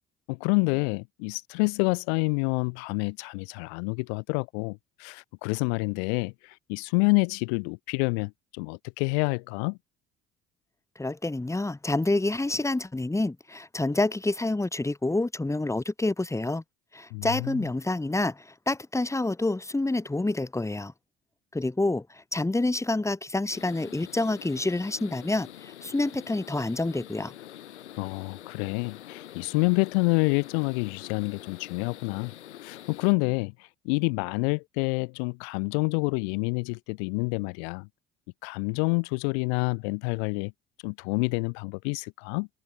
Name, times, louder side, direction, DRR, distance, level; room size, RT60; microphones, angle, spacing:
voice 1, 0.3-6.3 6.7-9.8 17.1-17.6 28.0-32.3 32.6-33.5 33.8-37.9 38.4-40.5 40.8-42.5, left 35 dB, 75° left, 0.8 m, -28 dB
voice 2, 11.0-16.6 16.9-20.9 21.5-27.3, left 2 dB, 10° left, 1.0 m, -28 dB
sound 1, 23.5-33.1, left 12 dB, 90° left, 1.8 m, -46 dB
open air
hypercardioid pair, 60°, 33 cm